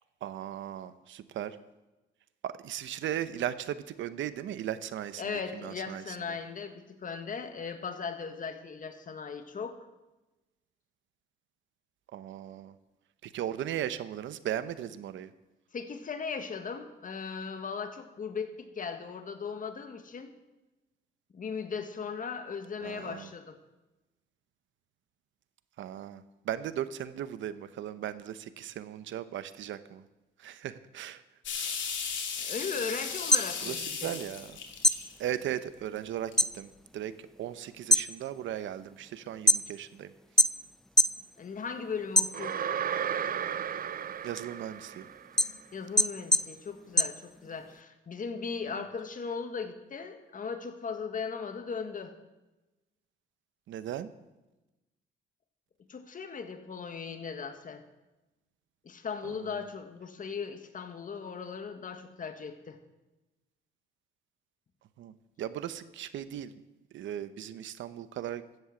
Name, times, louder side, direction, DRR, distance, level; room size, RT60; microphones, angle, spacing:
voice 1, 0.2-1.6 2.4-6.1 12.1-12.7 13.2-15.3 22.8-23.3 25.8-30.0 30.4-31.2 31.6-31.8 33.6-34.5 35.2-37.1 37.4-40.1 44.2-45.1 48.7-48.8 53.7-54.1 59.2-59.5 65.0-66.5 66.9-68.4, right 11 dB, 75° right, 14 dB, 0.9 m, -37 dB
voice 2, 5.2-9.8 15.7-20.3 21.3-23.6 32.4-34.1 41.4-42.8 45.7-52.1 55.9-57.8 58.8-62.8, left 5 dB, 40° left, 7 dB, 1.6 m, -38 dB
sound 1, 31.4-35.6 36.1-36.3, left 6 dB, 70° left, 2.3 m, -36 dB
sound 2, 33.1-34.5 34.8-36.6 36.9-37.4 37.8-39.9 40.4-41.2 41.6-42.8 43.2-47.8, left 1 dB, 5° left, 0.5 m, -26 dB
sound 3, 42.3-45.4, right 8 dB, 45° right, 0.6 m, -34 dB
14.5 x 7.9 x 7.1 m, 1.1 s
cardioid pair, 90°, 20 cm